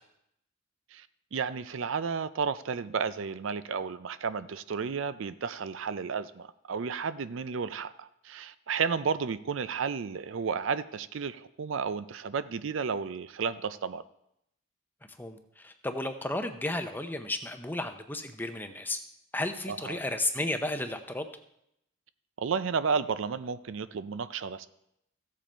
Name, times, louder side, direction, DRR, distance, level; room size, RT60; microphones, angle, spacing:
voice 1, 1.3-14.0 19.7-20.0 22.4-24.7, right 5 dB, 60° right, 14 dB, 0.4 m, -32 dB
voice 2, 15.2-19.0 19.3-21.3, left 2 dB, 10° left, 7 dB, 0.7 m, -33 dB
15.0 x 7.5 x 4.5 m, 0.79 s
head